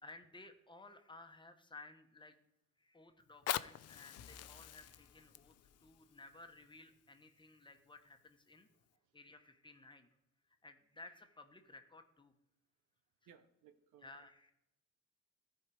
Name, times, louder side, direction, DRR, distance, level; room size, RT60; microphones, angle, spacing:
voice 1, 0.0-2.4 2.8-5.5 5.8-8.7 9.1-10.1 10.6-12.3 14.0-14.5, left 2 dB, 15° left, 7 dB, 1.1 m, -57 dB
Fire, 3.2-8.2 8.8-8.9, left 12 dB, 55° left, 0.4 m, -45 dB
Vehicle / Engine, 4.2-7.2, left 3 dB, 75° left, 0.9 m, -65 dB
voice 2, 8.7-9.2 13.2-14.3, right 8 dB, 85° right, 10 dB, 0.9 m, -65 dB
14.5 x 4.8 x 4.8 m, 0.88 s
cardioid pair, 90°, 30 cm